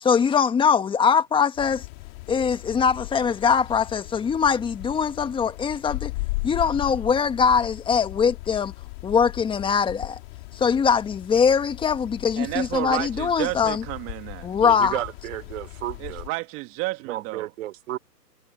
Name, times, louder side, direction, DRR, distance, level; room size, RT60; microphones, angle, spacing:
voice 1, 0.0-1.8 2.3-6.1 6.4-8.7 9.0-10.2 10.5-13.8 14.4-15.0, left 6 dB, 10° left, 1.5 m, -22 dB
sound 1, 1.6-16.3, left 25 dB, 40° left, 4.0 m, -37 dB
voice 2, 12.4-14.6 16.0-17.5, right 22 dB, 25° right, 2.0 m, -31 dB
voice 3, 14.6-16.2 17.0-18.0, right 14 dB, 50° right, 3.3 m, -32 dB
hypercardioid pair, 140°, 49 cm